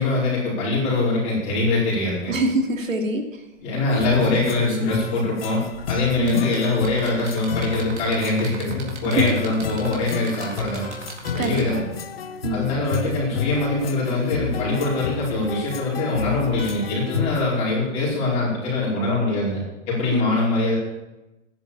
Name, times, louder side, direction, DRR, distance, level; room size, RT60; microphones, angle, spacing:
voice 1, 0.0-2.3 3.6-5.6 5.9-10.8 11.2-11.8 12.5-19.6 19.9-20.8, left 2 dB, 15° left, -6 dB, 5.0 m, -23 dB
sound 1, 2.3-2.4 2.7-2.9 3.5-11.9 13.1-13.2, right 3 dB, 60° right, 4.0 m, -38 dB
voice 2, 2.3-3.4 6.2-6.4 9.1-9.2 11.4-11.9 12.4-12.7 20.1-20.3, right 2 dB, 85° right, 2 dB, 3.0 m, -24 dB
sound 2, 4.0-17.5, left 6 dB, 50° left, 0.9 m, -31 dB
12.5 x 10.5 x 7.3 m, 1.0 s
hypercardioid pair, 165°, 38 cm